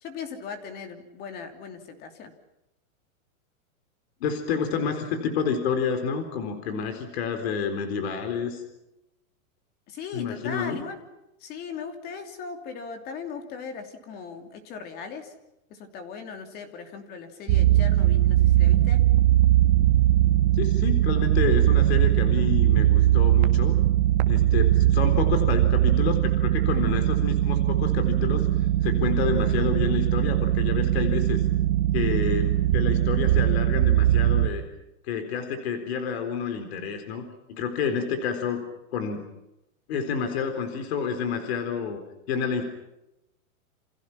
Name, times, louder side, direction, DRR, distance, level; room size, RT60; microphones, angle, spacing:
voice 1, 0.0-2.3 9.9-11.0 11.4-15.3 15.7-19.0, left 6 dB, 20° left, 6 dB, 2.9 m, -38 dB
voice 2, 4.2-8.6 10.1-10.8 20.6-23.8 24.3-31.4 31.9-34.6 35.1-38.6 38.9-39.2 39.9-42.0 42.3-42.6, left 6 dB, 45° left, 7 dB, 4.1 m, -29 dB
sound 1, 17.5-34.5, right 13 dB, 35° right, 1.8 m, -21 dB
29.5 x 28.0 x 5.9 m, 0.91 s
supercardioid pair, 170°, 43 cm